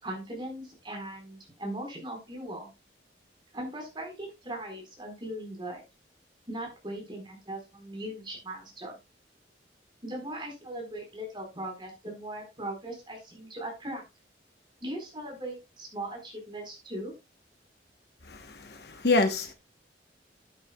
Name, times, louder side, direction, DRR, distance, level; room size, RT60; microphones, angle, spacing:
voice 1, 0.0-2.7 3.5-5.8 6.5-9.0 10.0-14.0 14.8-17.1, right 1 dB, 25° right, 4.3 m, -39 dB
voice 2, 18.3-19.5, left 3 dB, 60° left, 1.1 m, -27 dB
13.0 x 8.8 x 2.3 m
head